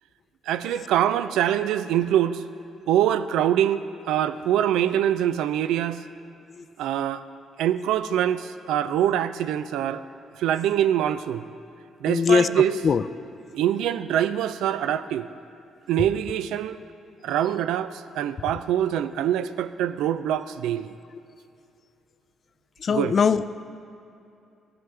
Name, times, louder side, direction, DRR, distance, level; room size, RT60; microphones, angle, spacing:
voice 1, 0.5-2.4 2.9-6.0 6.8-7.2 7.6-10.0 10.4-11.4 12.0-12.8 13.5-15.3 15.9-16.8 17.2-20.9 22.9-23.2, right 10 dB, 90° right, 13 dB, 0.3 m, -24 dB
voice 2, 12.1-12.5 12.8-13.0 22.8-23.5, left 6 dB, 45° left, 14 dB, 0.3 m, -20 dB
14.5 x 9.3 x 3.3 m, 2.7 s
cardioid pair, 90°, 0 cm